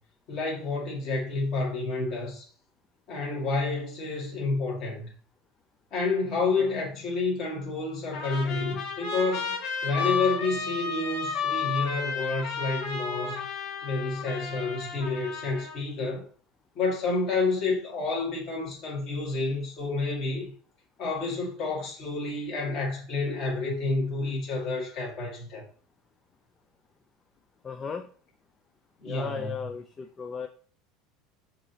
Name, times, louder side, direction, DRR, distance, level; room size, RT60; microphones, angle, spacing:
voice 1, 0.3-2.4 3.1-5.1 5.9-9.5 9.8-13.5 13.8-16.3 16.8-20.5 21.0-25.7 29.0-29.5, left 3 dB, 45° left, 2.0 m, -29 dB
Trumpet, 8.1-15.8, left 5 dB, 70° left, 1.3 m, -32 dB
voice 2, 27.6-28.1 29.0-30.5, left 6 dB, 20° left, 0.3 m, -36 dB
6.0 x 2.9 x 2.7 m
supercardioid pair, 150°, 0 cm